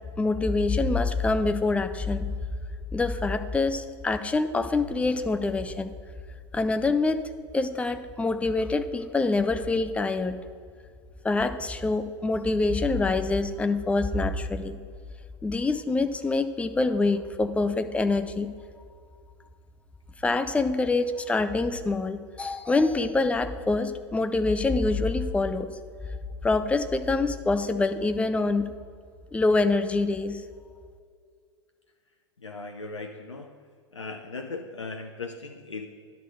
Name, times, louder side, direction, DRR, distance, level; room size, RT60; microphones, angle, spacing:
voice 1, 0.2-2.3 2.9-5.9 6.5-7.3 7.5-10.4 11.2-14.8 15.4-18.5 20.2-25.7 26.4-28.7 29.3-30.4, left 3 dB, 10° left, 9 dB, 0.5 m, -25 dB
voice 2, 32.4-33.5 33.9-35.9, left 3 dB, 85° left, 5 dB, 0.6 m, -38 dB
11.0 x 3.9 x 6.5 m, 2.1 s
figure-of-eight pair, 95°, 15 cm